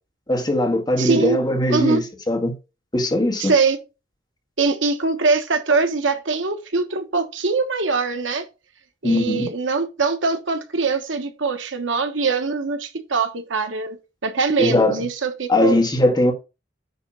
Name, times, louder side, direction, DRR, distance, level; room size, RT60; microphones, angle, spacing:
voice 1, 0.3-2.5 2.9-3.5 9.0-9.5 14.6-15.0 15.5-16.3, left 1 dB, 20° left, 1.9 m, -20 dB
voice 2, 1.0-1.4 1.7-2.0 3.4-3.8 4.6-8.4 9.0-14.0 14.2-15.8, right 4 dB, 70° right, 1.2 m, -22 dB
9.4 x 3.5 x 5.6 m
head